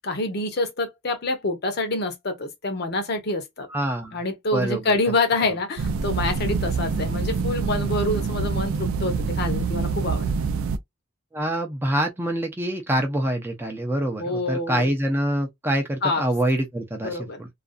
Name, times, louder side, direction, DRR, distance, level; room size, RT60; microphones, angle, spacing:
voice 1, 0.0-3.7 4.1-10.3 14.2-14.9 16.0-16.2 17.0-17.4, left 2 dB, 50° left, 0.7 m, -26 dB
voice 2, 3.7-4.2 4.5-4.9 11.3-17.5, right 1 dB, 10° right, 0.4 m, -25 dB
sound 1, 5.8-10.8, right 5 dB, 80° right, 0.4 m, -26 dB
2.4 x 2.3 x 2.4 m
head